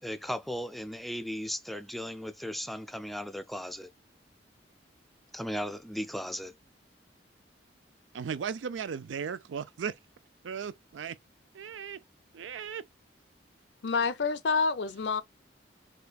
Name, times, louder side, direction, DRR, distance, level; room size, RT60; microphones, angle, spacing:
voice 1, 0.0-3.9 5.3-6.5, equal, ahead, 0.3 m, -36 dB
voice 2, 8.1-9.9 10.4-11.2 11.5-12.0 12.3-12.8, right 7 dB, 85° right, 0.4 m, -36 dB
voice 3, 13.8-15.2, left 4 dB, 65° left, 0.5 m, -28 dB
5.1 x 2.2 x 2.3 m
head